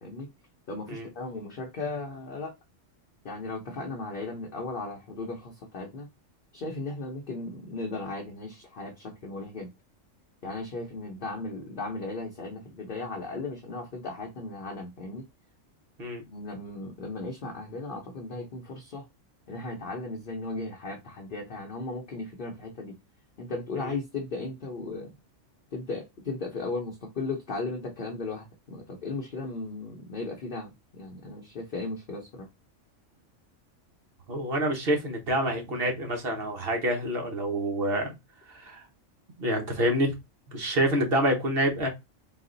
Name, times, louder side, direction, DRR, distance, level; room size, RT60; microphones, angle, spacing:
voice 1, 0.7-2.5 3.2-6.1 6.5-9.7 10.4-15.3 16.3-19.1 19.5-23.0 23.4-25.1 25.7-32.5, left 3 dB, 50° left, 0.9 m, -36 dB
voice 2, 34.3-38.1 38.5-38.9 39.4-40.2 40.5-41.9, right 1 dB, 50° right, 1.3 m, -27 dB
4.1 x 2.4 x 3.8 m
omnidirectional pair, 1.3 m